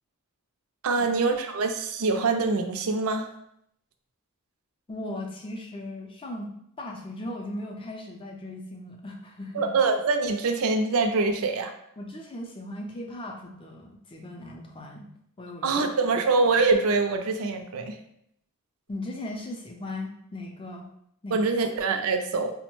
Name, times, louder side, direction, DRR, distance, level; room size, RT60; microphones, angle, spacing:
voice 1, 0.8-3.3 9.5-11.7 15.6-17.9 21.3-22.5, right 3 dB, 65° right, 6 dB, 0.4 m, -24 dB
voice 2, 4.9-6.5 6.8-9.8 12.0-15.1 15.4-15.8 18.9-20.9 21.2-21.4, left 1 dB, 25° left, 1 dB, 0.4 m, -38 dB
4.4 x 2.1 x 3.0 m, 0.73 s
head